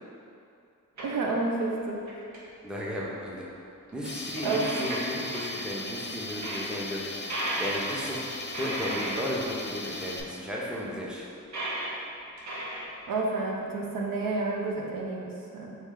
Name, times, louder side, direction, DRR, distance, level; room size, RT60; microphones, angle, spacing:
sound 1, 1.0-1.6 1.9-2.4 3.4-3.5 3.9-4.0 4.3-5.6 6.1-6.2 6.4-6.7 7.3-8.1 8.4-9.3 10.4-10.5 11.5-11.9 12.4-13.4 13.9-14.0 14.9-15.0, right 1 dB, 55° right, 0.8 m, -35 dB
voice 1, 1.0-2.0 4.4-4.9 13.1-15.8, right 3 dB, 85° right, -1 dB, 0.6 m, -30 dB
voice 2, 2.6-3.5 3.9-7.1 7.6-8.2 8.6-11.2, equal, 5° right, -5 dB, 0.6 m, -34 dB
Tools, 4.0-10.2, left 2 dB, 35° left, 0.4 m, -38 dB
3.2 x 3.1 x 3.7 m, 2.6 s
wide cardioid pair, 85°, 33 cm